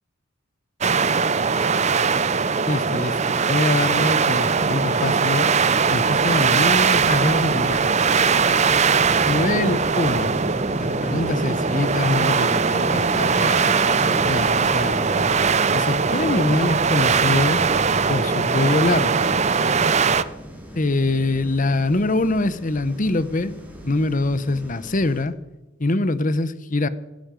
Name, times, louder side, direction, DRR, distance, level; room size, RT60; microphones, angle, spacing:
sound 1, 0.8-20.2, right 5 dB, 30° right, 0.6 m, -20 dB
voice 1, 2.6-5.5 5.9-8.2 8.5-8.6 9.2-10.4 10.7-15.3 15.7-17.6 18.1-19.3 20.7-23.5 23.8-25.3 25.8-26.9, left 2 dB, 40° left, 15 dB, 0.9 m, -24 dB
sound 2, 5.8-25.2, equal, 10° right, 3.4 m, -41 dB
Motorcycle, 7.8-21.5, left 1 dB, 10° left, 1.0 m, -37 dB
16.0 x 15.5 x 5.2 m, 1.1 s
head